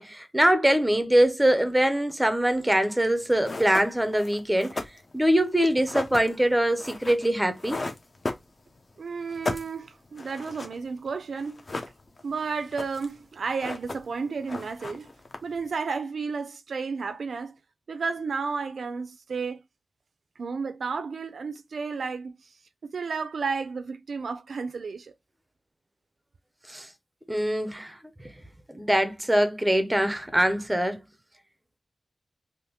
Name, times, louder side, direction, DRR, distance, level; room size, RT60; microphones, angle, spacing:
voice 1, 0.0-4.8 5.1-7.8 26.7-26.9 27.3-27.9 28.7-31.0, right 1 dB, 10° right, 0.5 m, -23 dB
sound 1, 3.1-3.2 3.4-8.9 9.2-11.1 11.4-12.3 12.6-13.2 13.5-14.2 14.5-15.7, left 2 dB, 35° left, 0.6 m, -36 dB
voice 2, 9.0-11.6 12.2-15.1 15.4-17.5 17.9-19.6 20.4-22.3 22.8-25.1, right 5 dB, 75° right, 0.3 m, -32 dB
3.4 x 2.5 x 2.8 m
wide cardioid pair, 135°, 0 cm